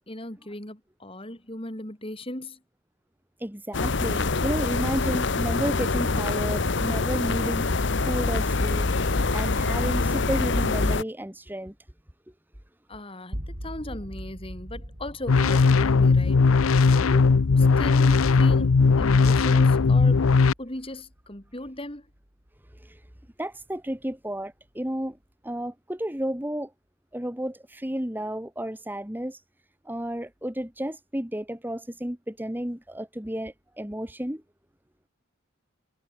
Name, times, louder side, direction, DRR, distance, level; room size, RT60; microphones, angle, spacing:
voice 1, 0.1-2.6 5.0-5.1 12.9-16.4 16.9-20.2 20.6-22.1, left 1 dB, 25° left, 3.0 m, -37 dB
voice 2, 3.4-7.6 8.0-11.7 22.8-23.0 23.4-25.2 25.4-26.7 27.1-29.4 29.8-34.4, equal, 10° right, 1.5 m, -32 dB
sound 1, 3.7-11.0, left 3 dB, 55° left, 1.0 m, -25 dB
sound 2, 13.3-23.3, equal, 45° right, 6.9 m, -43 dB
sound 3, 15.3-20.5, left 4 dB, 80° left, 0.6 m, -18 dB
head